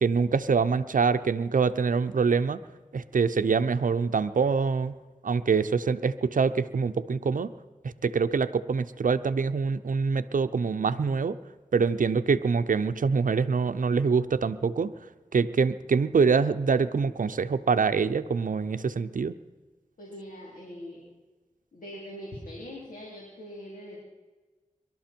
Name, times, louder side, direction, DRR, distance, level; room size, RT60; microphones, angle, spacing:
voice 1, 0.0-2.6 2.9-4.9 5.2-7.5 7.8-11.4 11.7-14.9 15.3-19.3, right 5 dB, 80° right, 10 dB, 0.7 m, -25 dB
voice 2, 20.0-21.0 21.7-24.0, equal, 80° left, -4 dB, 3.7 m, -42 dB
23.0 x 12.5 x 4.5 m, 1.3 s
cardioid pair, 45°, 14 cm